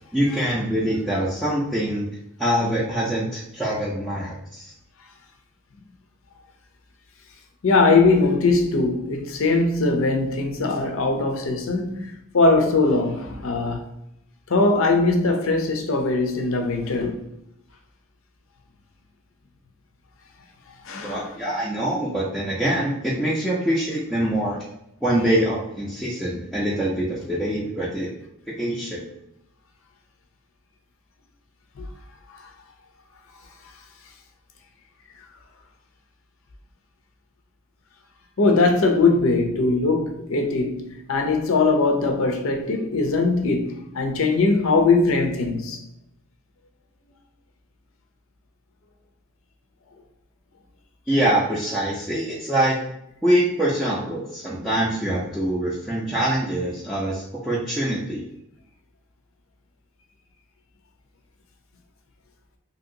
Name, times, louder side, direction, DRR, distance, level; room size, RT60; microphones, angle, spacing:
voice 1, 0.1-2.1 2.4-4.7 21.0-24.6 25.0-28.1 28.6-29.0 51.1-52.8 53.2-58.2, right 1 dB, ahead, 0.4 m, -24 dB
voice 2, 7.6-13.8 14.5-17.2 20.9-21.3 31.8-31.9 32.3-32.5 38.4-45.8, left 3 dB, 65° left, 0.5 m, -21 dB
2.8 x 2.8 x 2.6 m
head